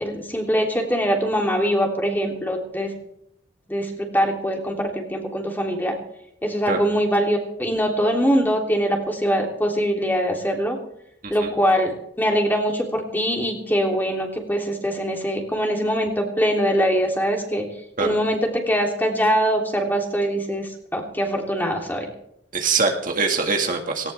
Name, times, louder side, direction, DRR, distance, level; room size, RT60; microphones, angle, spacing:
voice 1, 0.0-2.9 3.7-5.9 6.4-10.8 11.3-17.6 18.0-22.1, equal, 10° left, 1 dB, 3.1 m, -23 dB
voice 2, 22.5-24.1, right 4 dB, 45° right, 3 dB, 1.9 m, -23 dB
18.5 x 18.5 x 3.5 m, 0.74 s
head